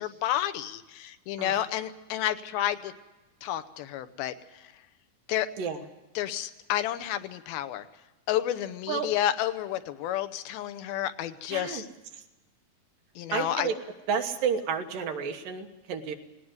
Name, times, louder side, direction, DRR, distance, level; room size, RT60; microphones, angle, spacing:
voice 1, 0.0-2.9 3.4-4.3 5.3-5.5 6.2-7.8 8.3-11.9 13.2-13.7, left 12 dB, 85° left, 12 dB, 2.8 m, -30 dB
voice 2, 11.5-11.8 13.3-13.7 14.1-16.1, right 6 dB, 70° right, 5 dB, 3.0 m, -31 dB
19.0 x 18.5 x 7.9 m, 1.1 s
omnidirectional pair, 4.2 m